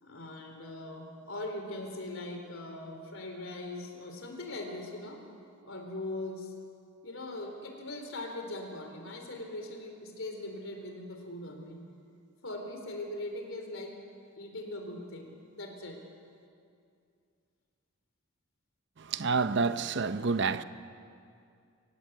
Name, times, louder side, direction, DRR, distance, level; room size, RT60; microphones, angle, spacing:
voice 1, 0.0-5.2 5.6-6.5 7.0-11.8 12.4-14.0 14.4-16.0, left 2 dB, 60° left, 4.0 m, -40 dB
voice 2, 19.1-20.6, right 4 dB, 55° right, 0.7 m, -28 dB
27.5 x 17.5 x 8.1 m
head